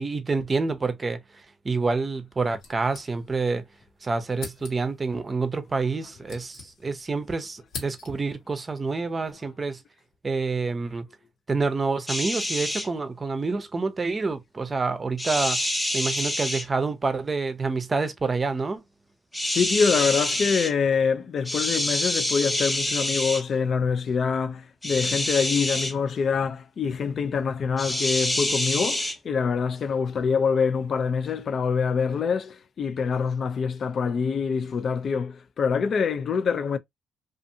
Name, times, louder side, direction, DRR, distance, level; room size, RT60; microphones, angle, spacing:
voice 1, 0.0-3.6 4.0-9.8 10.2-11.1 11.5-15.6 15.9-18.8, right 4 dB, 30° right, 0.6 m, -27 dB
sound 1, 2.6-3.6 3.8-3.9 4.3-5.0 5.9-7.1 7.4-8.4, left 4 dB, 85° left, 1.2 m, -42 dB
sound 2, 12.1-12.9 15.2-16.7 19.3-20.7 21.4-23.4 24.8-25.9 27.8-29.1, left 1 dB, 10° left, 0.7 m, -27 dB
voice 2, 19.4-36.8, left 6 dB, 55° left, 0.4 m, -25 dB
2.6 x 2.4 x 2.6 m
cardioid pair, 90°, 0 cm